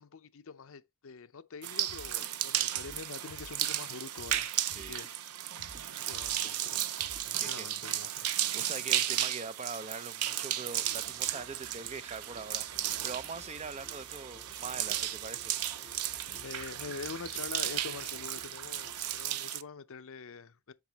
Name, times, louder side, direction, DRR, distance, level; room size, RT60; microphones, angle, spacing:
voice 1, 0.0-5.2 6.1-6.9 7.3-8.3 16.3-20.7, left 5 dB, 65° left, 0.6 m, -45 dB
sound 1, 1.6-19.6, right 12 dB, 85° right, 0.5 m, -34 dB
sound 2, 1.9-7.4, equal, 70° right, 4.9 m, -53 dB
voice 2, 4.6-5.1 7.4-8.3 8.5-15.6, right 4 dB, 30° right, 0.7 m, -43 dB
sound 3, 10.8-19.3, left 1 dB, 15° right, 1.5 m, -57 dB
8.5 x 6.1 x 2.9 m
head